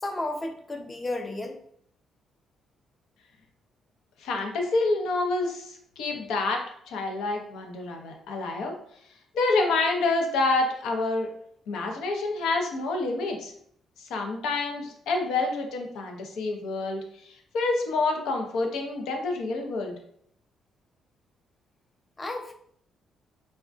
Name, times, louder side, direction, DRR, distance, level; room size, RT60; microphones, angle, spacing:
voice 1, 0.0-1.6 22.2-22.5, left 2 dB, 25° left, 3 dB, 0.5 m, -32 dB
voice 2, 4.2-8.8 9.3-11.3 11.7-13.5 14.0-17.0 17.5-20.0, left 3 dB, 85° left, 2 dB, 0.6 m, -27 dB
3.5 x 2.1 x 2.5 m, 0.66 s
cardioid pair, 90°, 0 cm